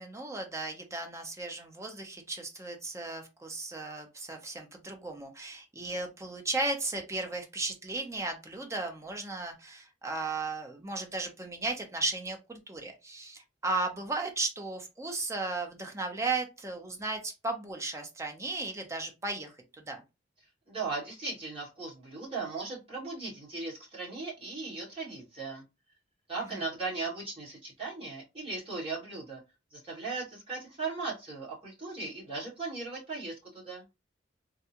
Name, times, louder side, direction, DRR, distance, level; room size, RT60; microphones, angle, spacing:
voice 1, 0.0-20.0, right 3 dB, 15° right, 3 dB, 0.7 m, -35 dB
voice 2, 20.7-25.6 26.3-29.4 29.7-33.8, right 3 dB, 30° right, -6 dB, 2.0 m, -37 dB
3.6 x 2.3 x 2.8 m, 0.25 s
head